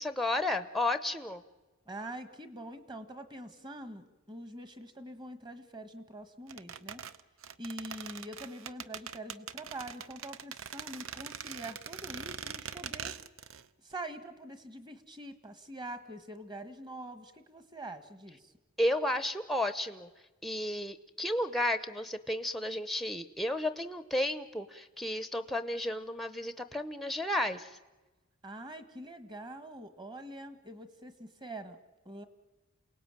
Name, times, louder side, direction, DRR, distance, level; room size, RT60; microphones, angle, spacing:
voice 1, 0.0-1.4 18.8-20.1 20.4-27.7, left 1 dB, ahead, 12 dB, 0.7 m, -32 dB
voice 2, 1.9-7.0 7.6-13.1 13.8-18.5 28.4-31.8 32.0-32.2, right 1 dB, 20° right, 11 dB, 1.5 m, -44 dB
sound 1, 6.5-13.7 13.9-14.0, right 8 dB, 60° right, 0.7 m, -42 dB
28.0 x 18.5 x 9.0 m, 1.2 s
head